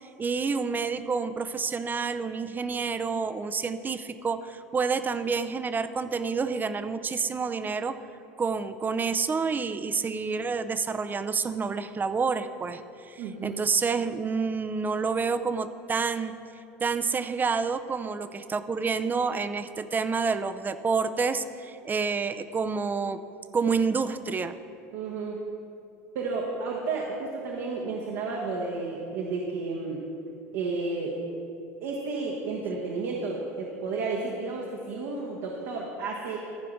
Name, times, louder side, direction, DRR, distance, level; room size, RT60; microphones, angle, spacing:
voice 1, 0.0-7.9 8.4-16.3 16.8-23.2 23.5-24.6, right 5 dB, 25° right, 11 dB, 0.6 m, -28 dB
voice 2, 13.2-13.6 24.9-25.4 26.1-30.0 30.5-31.1 31.8-36.4, right 3 dB, 70° right, -3 dB, 1.4 m, -32 dB
14.5 x 4.9 x 6.0 m, 2.6 s
hypercardioid pair, 80°, 8 cm